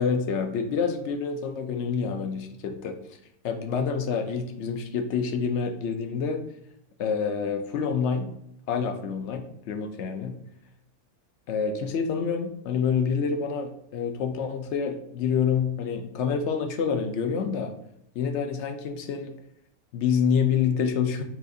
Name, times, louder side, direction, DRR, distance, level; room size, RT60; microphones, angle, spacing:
voice 1, 0.0-3.0 3.4-6.4 7.0-8.3 8.7-10.4 11.5-17.7 18.1-19.3 19.9-21.2, left 6 dB, 65° left, 7 dB, 0.7 m, -27 dB
7.3 x 2.4 x 2.6 m, 0.74 s
omnidirectional pair, 1.6 m